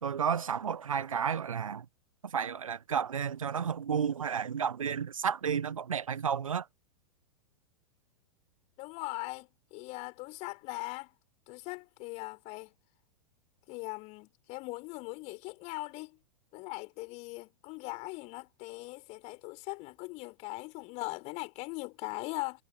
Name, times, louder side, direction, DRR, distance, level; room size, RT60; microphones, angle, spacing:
voice 1, 0.0-1.8 2.3-6.7, right 7 dB, 70° right, 1.3 m, -32 dB
voice 2, 8.8-11.1 11.5-12.7 13.7-16.2 16.5-22.6, left 25 dB, 40° left, 5.0 m, -40 dB
figure-of-eight pair, 95°, 18 cm